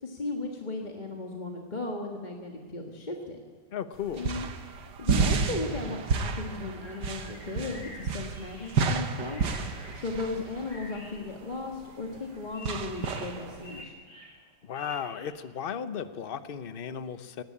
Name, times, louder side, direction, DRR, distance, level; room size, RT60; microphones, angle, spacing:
voice 1, 0.0-3.4 4.1-4.5 5.0-9.4 9.9-14.0, left 2 dB, 25° left, 1 dB, 1.6 m, -36 dB
voice 2, 3.7-4.3 14.6-17.4, left 8 dB, 40° left, 12 dB, 0.8 m, -35 dB
sound 1, 3.9-13.8, right 5 dB, 70° right, 1.8 m, -31 dB
sound 2, 6.5-15.2, left 1 dB, 65° left, 7.5 m, -50 dB
19.0 x 18.0 x 8.6 m, 1.5 s
omnidirectional pair, 2.0 m